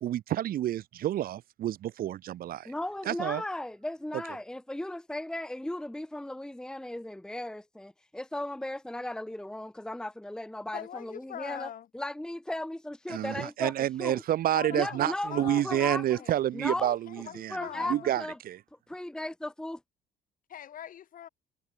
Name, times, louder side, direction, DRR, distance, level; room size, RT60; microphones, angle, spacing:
voice 1, 0.0-2.7 3.0-3.4 4.1-4.2 13.1-17.6 17.9-18.6, right 12 dB, 60° right, 1.1 m, -29 dB
voice 2, 2.7-11.7 11.9-13.7 14.0-14.2 14.7-16.2 16.5-17.0 17.5-18.4 18.9-19.8, left 1 dB, 5° left, 1.1 m, -36 dB
voice 3, 10.7-11.9 14.5-15.0 15.3-16.4 17.1-18.1 20.5-21.3, left 10 dB, 55° left, 4.4 m, -42 dB
cardioid pair, 110°, 17 cm